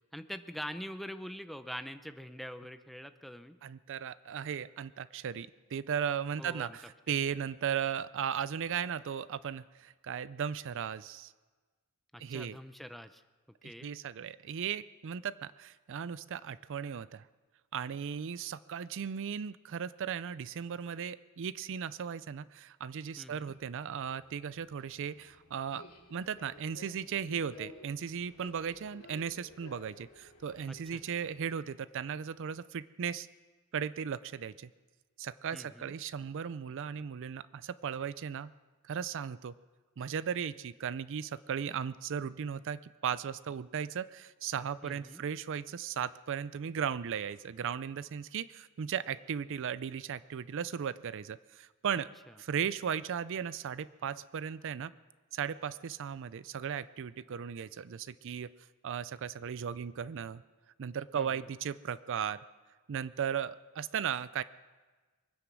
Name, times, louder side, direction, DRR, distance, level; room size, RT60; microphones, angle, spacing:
voice 1, 0.1-3.6 6.4-6.8 12.1-13.2 13.6-13.9 23.2-23.5 30.7-31.0 35.5-35.9 44.8-45.2 61.1-61.5, equal, ahead, 9 dB, 0.6 m, -44 dB
voice 2, 3.6-11.3 12.2-12.6 13.8-17.3 17.7-25.8 26.1-33.3 33.7-34.7 35.2-38.5 38.8-39.5 40.0-52.1 52.4-54.9 55.3-58.5 58.8-60.4 60.8-62.4 62.9-64.4, right 7 dB, 60° right, 17 dB, 0.4 m, -36 dB
Subway metro underground, 23.5-31.4, left 2 dB, 80° left, 2.6 m, -55 dB
23.5 x 9.9 x 6.1 m, 1.3 s
head